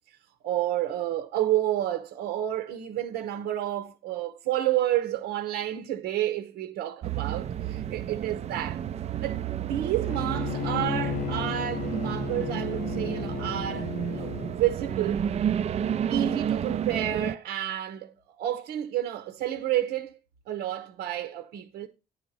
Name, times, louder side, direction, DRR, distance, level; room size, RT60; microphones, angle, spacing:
voice 1, 0.4-8.8 9.2-15.2 16.1-20.2 20.5-21.9, right 12 dB, 85° right, 1.0 m, -30 dB
sound 1, 7.0-17.3, right 9 dB, 40° right, 0.5 m, -31 dB
Bowed string instrument, 10.0-14.6, left 13 dB, 50° left, 0.4 m, -34 dB
9.7 x 4.3 x 6.7 m
cardioid pair, 110°, 17 cm